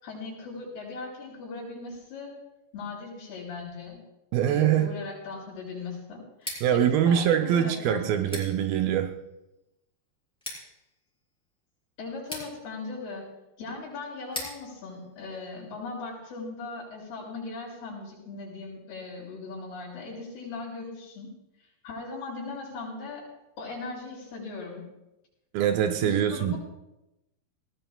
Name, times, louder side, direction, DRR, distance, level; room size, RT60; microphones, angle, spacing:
voice 1, 0.0-2.3 2.7-4.0 4.5-8.4 12.0-13.3 13.6-21.3 21.8-23.2 23.6-24.9 26.0-26.6, left 3 dB, 80° left, 8.5 m, -39 dB
voice 2, 4.3-4.9 6.6-9.1 25.5-26.5, right 9 dB, 80° right, 2.3 m, -23 dB
Scissors, 6.3-16.1, left 1 dB, ahead, 4.8 m, -45 dB
19.5 x 19.0 x 2.3 m
omnidirectional pair, 4.6 m